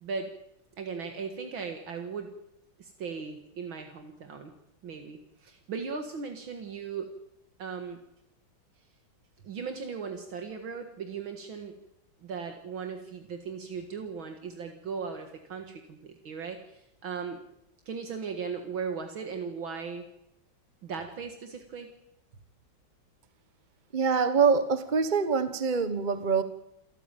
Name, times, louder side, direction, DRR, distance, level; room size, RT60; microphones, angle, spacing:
voice 1, 0.8-2.3 2.8-4.5 4.8-7.1 7.6-8.0 9.4-11.7 12.2-17.4 17.9-20.1 20.8-21.9, right 5 dB, 75° right, 2.6 m, -37 dB
voice 2, 23.9-26.4, right 5 dB, 30° right, 1.1 m, -25 dB
28.5 x 13.5 x 9.1 m
omnidirectional pair, 2.2 m